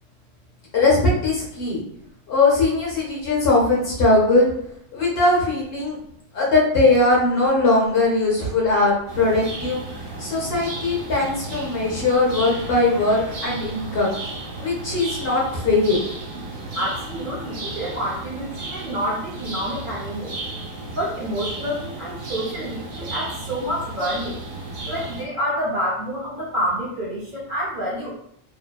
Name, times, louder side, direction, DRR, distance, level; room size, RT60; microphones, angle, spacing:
voice 1, 0.7-1.8 2.3-4.5 4.9-6.0 6.3-9.8 10.2-14.1 14.6-16.0, left 2 dB, 55° left, -4 dB, 0.8 m, -20 dB
sound 1, 9.1-25.2, right 2 dB, 80° right, 1.1 m, -34 dB
voice 2, 16.7-20.4 20.9-24.4 24.9-28.1, equal, 55° right, -6 dB, 0.6 m, -28 dB
2.7 x 2.0 x 2.2 m, 0.72 s
omnidirectional pair, 1.4 m